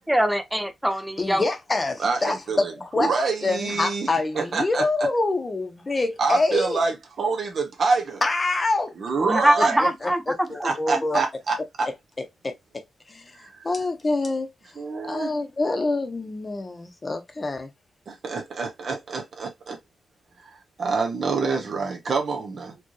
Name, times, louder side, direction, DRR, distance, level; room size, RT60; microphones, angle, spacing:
voice 1, 0.1-1.5 9.3-11.0, right 1 dB, 5° right, 0.6 m, -23 dB
voice 2, 1.2-3.1 3.4-6.8 8.2-8.9 9.6-11.2 12.4-12.5 13.1-13.2 13.6-14.5 15.0-17.7, left 2 dB, 25° left, 0.9 m, -26 dB
voice 3, 2.0-4.1 4.3-4.8 6.2-8.2 9.0-9.9 10.6-11.9 13.4-13.7 14.8-15.3 18.1-19.8 20.4-20.5 20.8-22.8, right 4 dB, 55° right, 1.0 m, -26 dB
4.5 x 2.5 x 3.1 m
wide cardioid pair, 120°, 0 cm